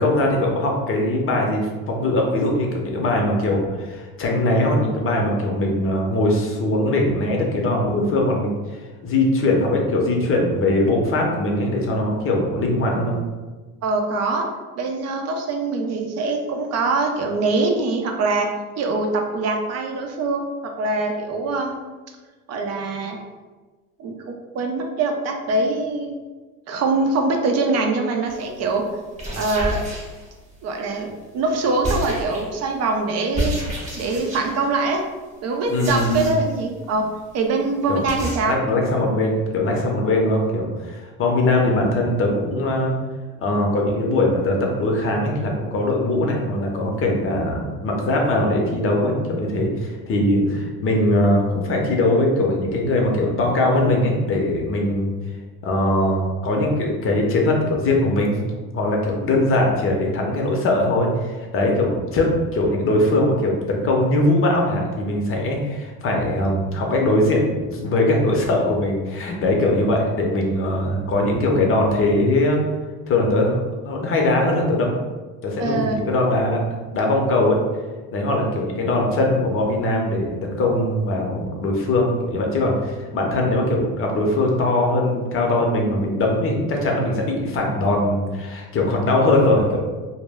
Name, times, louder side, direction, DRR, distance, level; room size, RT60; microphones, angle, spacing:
voice 1, 0.0-8.5 9.0-13.2 35.7-36.3 37.9-38.0 38.5-42.9 43.4-55.1 55.6-72.6 73.1-73.6 73.8-75.0 75.4-76.7 76.9-77.6 78.1-89.8, left 1 dB, 40° left, 0 dB, 0.6 m, -21 dB
voice 2, 13.8-14.5 14.8-18.5 18.8-21.8 22.5-23.2 24.0-26.1 26.7-28.9 29.4-29.8 30.6-33.6 33.9-35.0 35.4-37.1 37.3-38.6 75.6-76.0, right 3 dB, 45° right, 3 dB, 0.5 m, -23 dB
sound 1, 28.3-28.5 29.1-30.6 31.8-32.7 33.3-34.7 35.7-36.6 36.9-37.0 37.3-37.4 37.6-37.7 38.1-38.4, equal, 20° right, 0.9 m, -29 dB
2.1 x 2.0 x 3.4 m, 1.3 s
supercardioid pair, 105°, 35 cm